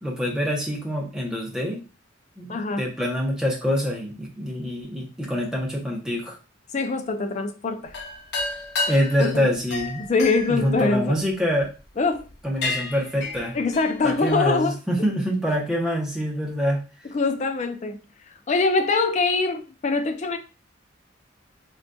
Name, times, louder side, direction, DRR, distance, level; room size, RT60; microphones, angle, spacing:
voice 1, 0.0-1.8 2.4-6.4 8.9-10.0 10.5-11.7 12.4-13.6 14.0-16.8, equal, 5° right, 0.8 m, -25 dB
voice 2, 2.5-2.8 6.7-7.9 9.2-9.5 10.0-11.2 12.0-12.3 13.5-14.7 17.1-18.0 18.5-20.4, left 3 dB, 35° left, 0.4 m, -23 dB
sound 1, 7.9-11.6 12.1-12.3 12.6-14.5, left 3 dB, 60° left, 0.7 m, -31 dB
3.7 x 2.5 x 2.2 m
head